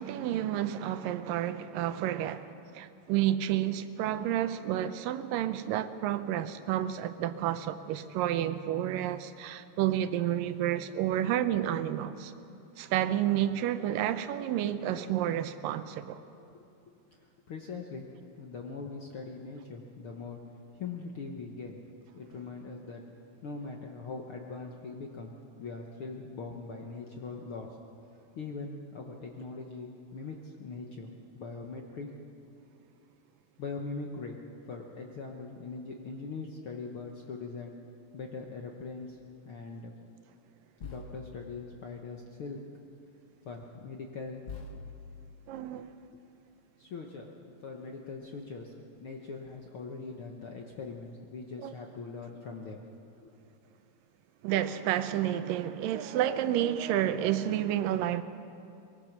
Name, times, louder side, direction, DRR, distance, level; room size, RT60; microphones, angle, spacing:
voice 1, 0.0-12.3 12.8-16.2 45.5-45.9 51.6-51.7 54.4-58.2, right 11 dB, 80° right, 11 dB, 2.4 m, -30 dB
voice 2, 17.2-18.1 18.4-20.4 20.7-21.8 22.1-23.0 23.4-25.3 25.6-27.7 28.3-32.1 33.6-34.4 34.6-37.7 38.1-39.2 39.4-39.9 40.8-42.6 43.4-44.4 45.7-45.8 46.8-52.8 53.2-53.3, left 4 dB, 60° left, 1 dB, 1.4 m, -41 dB
sound 1, 37.1-37.3 39.1-39.3 40.8-42.4 43.6-43.7 44.4-46.2 47.8-47.9 48.1-48.7 49.4-50.0 50.7-50.9, left 4 dB, 80° left, 0.7 m, -48 dB
23.5 x 21.5 x 6.1 m, 2.6 s
omnidirectional pair, 4.0 m